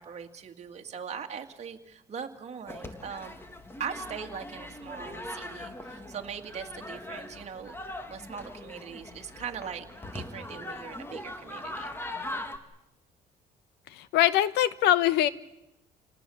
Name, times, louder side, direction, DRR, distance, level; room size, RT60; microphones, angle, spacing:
voice 1, 0.0-3.4 3.8-7.8 8.1-9.9 10.1-12.0, right 7 dB, 40° right, 3 dB, 2.2 m, -40 dB
sound 1, 2.7-12.6, left 1 dB, 15° left, 2.0 m, -41 dB
voice 2, 13.9-15.3, left 12 dB, 85° left, 15 dB, 1.0 m, -23 dB
28.5 x 19.0 x 7.1 m, 0.91 s
cardioid pair, 110°, 17 cm